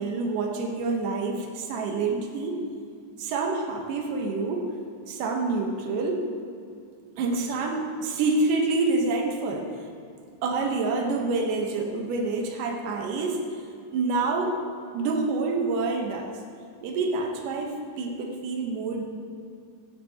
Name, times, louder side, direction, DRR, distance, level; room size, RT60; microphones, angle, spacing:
voice 1, 0.0-2.6 3.2-4.7 5.1-6.3 7.2-9.7 10.4-13.4 13.9-14.6 14.9-16.3 16.8-19.0, right 3 dB, 70° right, 1 dB, 2.6 m, -27 dB
16.0 x 11.0 x 2.9 m, 2.4 s
omnidirectional pair, 4.0 m